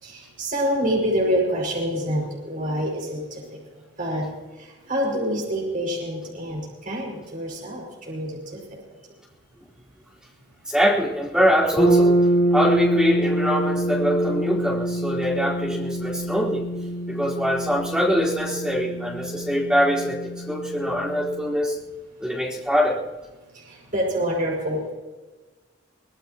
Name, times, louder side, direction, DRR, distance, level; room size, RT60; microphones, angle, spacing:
voice 1, 0.0-3.2 4.0-4.3 4.9-8.6 23.9-24.9, equal, 45° right, -3 dB, 6.1 m, -26 dB
voice 2, 10.7-12.2 12.5-16.7 17.1-21.8 22.2-23.0, equal, 5° right, -6 dB, 4.4 m, -23 dB
sound 1, 11.8-21.6, right 1 dB, 30° left, 4.0 m, -25 dB
25.0 x 18.5 x 3.0 m, 1.2 s
head